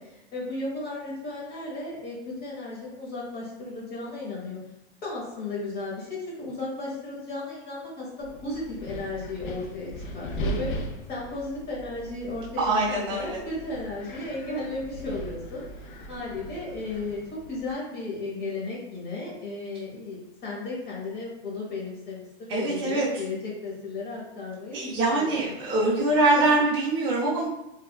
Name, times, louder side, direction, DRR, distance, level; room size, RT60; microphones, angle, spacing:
voice 1, 0.0-4.6 5.0-25.5 26.3-26.6, left 2 dB, 30° left, -5 dB, 1.1 m, -35 dB
Wind, 8.2-17.7, right 1 dB, 50° left, 0.5 m, -38 dB
voice 2, 12.6-13.4 22.5-23.1 24.7-27.5, right 2 dB, 15° right, -9 dB, 0.6 m, -23 dB
3.3 x 2.3 x 2.2 m, 0.89 s
supercardioid pair, 145°, 31 cm